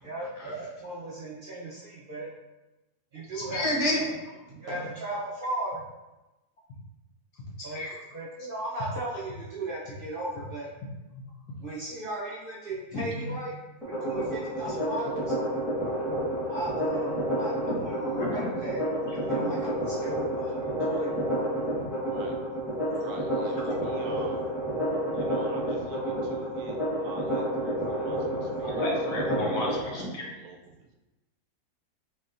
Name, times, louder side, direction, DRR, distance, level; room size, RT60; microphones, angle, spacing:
voice 1, 0.0-2.3 3.1-3.6 4.0-4.1 4.5-5.8 7.6-7.8 8.1-10.7 11.6-13.5 13.9-15.3 16.5-18.8 19.1-21.4, right 2 dB, 55° right, -6 dB, 0.6 m, -36 dB
voice 2, 3.5-4.0 7.7-7.9 12.9-13.4 18.2-18.5 19.3-19.5 21.7-21.8 28.7-30.2, left 1 dB, 85° left, -3 dB, 1.5 m, -31 dB
sound 1, 13.8-29.8, equal, ahead, 1.2 m, -29 dB
voice 3, 23.0-24.5 25.1-29.2 29.5-30.6, right 4 dB, 75° right, 2 dB, 1.1 m, -46 dB
4.4 x 3.5 x 2.5 m, 1.0 s
omnidirectional pair, 1.7 m